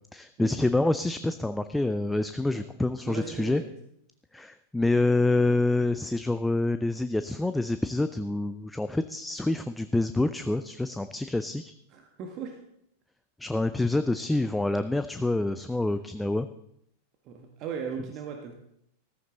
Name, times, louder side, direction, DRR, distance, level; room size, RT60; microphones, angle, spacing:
voice 1, 0.1-3.6 4.3-11.7 13.4-16.5, left 2 dB, 5° left, 10 dB, 0.5 m, -27 dB
voice 2, 3.0-3.7 11.9-12.6 17.2-18.5, right 6 dB, 40° right, 3 dB, 1.5 m, -37 dB
14.0 x 14.0 x 3.9 m, 0.76 s
figure-of-eight pair, 90°, 0 cm